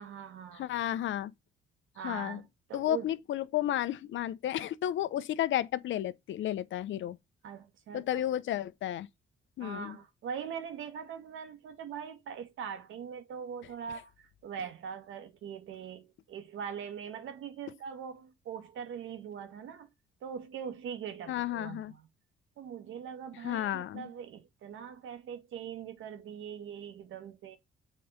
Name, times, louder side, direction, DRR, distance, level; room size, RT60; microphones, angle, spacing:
voice 1, 0.0-0.7 1.9-3.1 7.4-8.2 9.6-19.9 20.2-22.0 22.6-27.6, right 7 dB, 80° right, 2.0 m, -42 dB
voice 2, 0.6-1.3 2.0-2.4 2.7-7.2 7.9-9.1 9.6-10.0 21.3-21.9 23.4-24.1, left 12 dB, 70° left, 0.9 m, -32 dB
7.7 x 4.2 x 5.1 m
cardioid pair, 90°, 20 cm